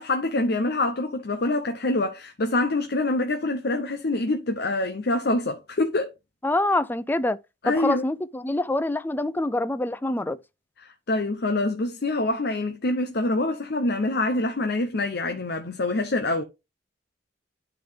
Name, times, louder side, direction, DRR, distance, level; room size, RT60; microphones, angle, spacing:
voice 1, 0.0-6.1 7.6-8.0 10.8-16.4, left 2 dB, 60° left, 0.8 m, -25 dB
voice 2, 6.4-7.4 7.6-10.4, left 1 dB, 10° left, 0.4 m, -25 dB
11.5 x 3.9 x 3.6 m
head